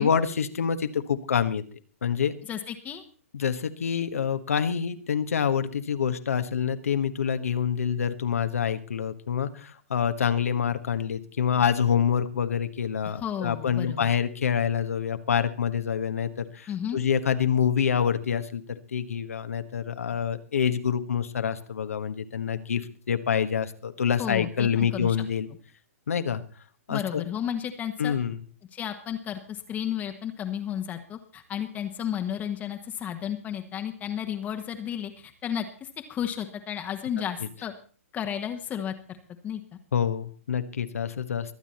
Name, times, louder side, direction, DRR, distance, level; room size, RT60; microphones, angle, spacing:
voice 1, 0.0-1.6 2.0-2.3 3.3-22.8 23.1-25.5 26.1-26.4 26.9-27.2 28.0-28.4 39.9-41.5, left 7 dB, 70° left, 9 dB, 1.4 m, -26 dB
voice 2, 2.5-3.0 13.1-14.1 16.7-17.0 24.2-25.2 26.9-28.2 28.7-37.7 38.1-38.9 39.4-39.6, left 9 dB, 20° left, 5 dB, 1.3 m, -33 dB
23.0 x 8.9 x 4.3 m, 0.40 s
hypercardioid pair, 125°, 8 cm